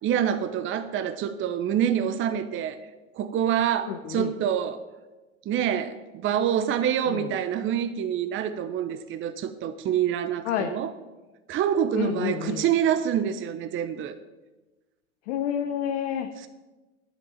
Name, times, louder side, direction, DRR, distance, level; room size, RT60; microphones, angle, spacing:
voice 1, 0.0-2.8 3.2-4.8 5.5-6.0 6.2-10.9 11.5-14.2, right 9 dB, 35° right, 10 dB, 0.8 m, -26 dB
voice 2, 3.8-4.3 7.1-7.3 10.4-10.8 11.9-12.6 15.3-16.3, left 9 dB, 60° left, 6 dB, 0.9 m, -29 dB
10.5 x 6.1 x 8.5 m, 1.2 s
hypercardioid pair, 85°, 36 cm